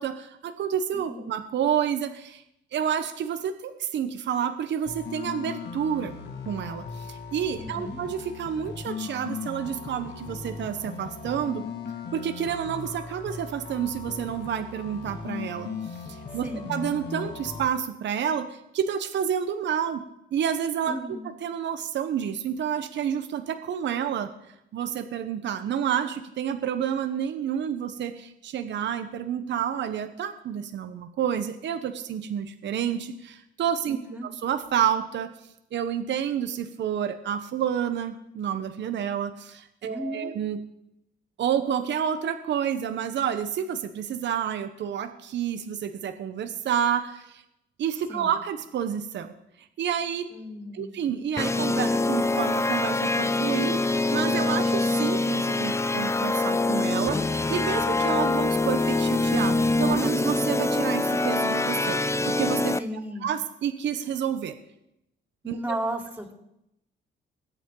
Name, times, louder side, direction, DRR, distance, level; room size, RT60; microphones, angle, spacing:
voice 1, 0.0-2.4 2.7-6.1 6.4-11.6 12.1-20.0 20.3-21.0 21.4-35.3 35.7-40.6 41.4-47.4 47.8-49.3 49.6-50.3 50.7-62.0 62.2-62.8 63.2-64.5 65.5-65.6, right 8 dB, 65° right, 8 dB, 1.0 m, -29 dB
voice 2, 0.9-1.3 7.6-8.0 16.3-16.7 20.9-21.3 33.9-34.3 39.9-40.3 48.1-48.3 50.3-50.9 62.8-63.3 65.4-66.3, equal, 10° right, 1 dB, 3.5 m, -35 dB
sound 1, 4.9-17.7, left 5 dB, 60° left, 2.0 m, -38 dB
sound 2, 51.4-62.8, left 2 dB, 15° left, 0.5 m, -24 dB
21.5 x 8.3 x 3.9 m, 0.81 s
cardioid pair, 90°, 20 cm